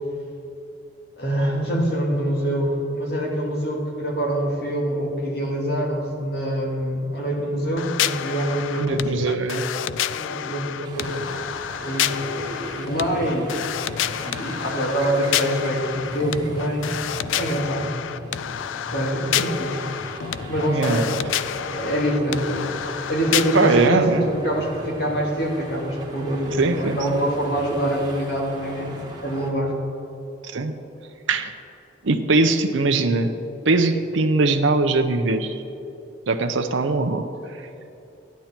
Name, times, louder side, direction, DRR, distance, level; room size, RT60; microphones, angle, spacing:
voice 1, 1.2-9.1 10.1-13.6 13.9-17.0 17.3-17.9 18.9-19.8 20.5-21.3 21.7-22.8 23.1-29.8, right 1 dB, 55° left, -2 dB, 2.3 m, -25 dB
sound 1, 7.8-23.9, left 10 dB, 90° left, 0.3 m, -29 dB
voice 2, 8.8-9.6 20.7-21.0 23.5-24.3 26.6-27.0 30.5-30.8 31.3-31.5 32.0-33.3 33.7-35.6 36.3-37.6, right 3 dB, 85° right, 6 dB, 0.7 m, -21 dB
sound 2, 10.8-29.5, right 1 dB, 20° right, 1.5 m, -39 dB
13.5 x 10.5 x 4.4 m, 2.8 s
head